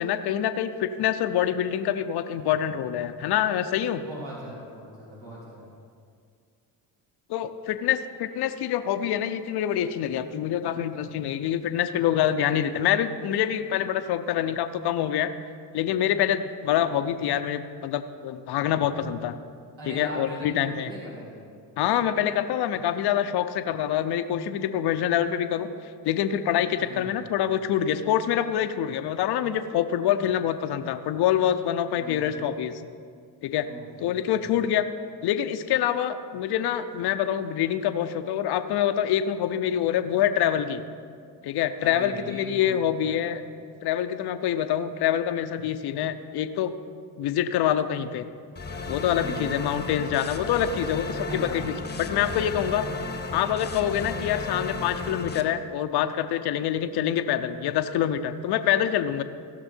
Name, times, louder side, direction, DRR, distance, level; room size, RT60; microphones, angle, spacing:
voice 1, 0.0-4.0 7.3-15.3 15.7-19.4 19.9-20.9 21.8-25.7 26.0-32.7 33.4-33.7 34.0-34.8 35.2-40.8 41.4-43.4 43.8-46.7 47.2-48.2 48.9-52.8 53.3-59.2, left 10 dB, 55° left, 9 dB, 0.7 m, -26 dB
voice 2, 3.9-5.7 19.8-21.4 26.8-27.2 32.0-32.5 33.6-34.6 41.8-43.1 49.2-49.6 51.3-51.8, equal, 65° right, -7 dB, 3.2 m, -40 dB
sound 1, 48.6-55.4, left 3 dB, 20° left, 1.0 m, -34 dB
16.5 x 6.2 x 4.4 m, 2.2 s
hypercardioid pair, 55°, 48 cm